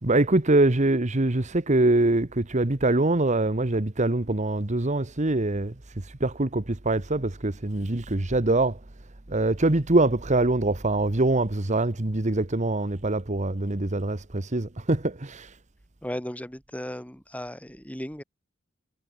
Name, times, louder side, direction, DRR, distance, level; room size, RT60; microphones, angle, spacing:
voice 1, 0.0-5.7 6.2-8.8 9.3-15.5, right 2 dB, 35° right, 1.3 m, -24 dB
voice 2, 16.0-18.2, equal, 5° left, 2.8 m, -36 dB
head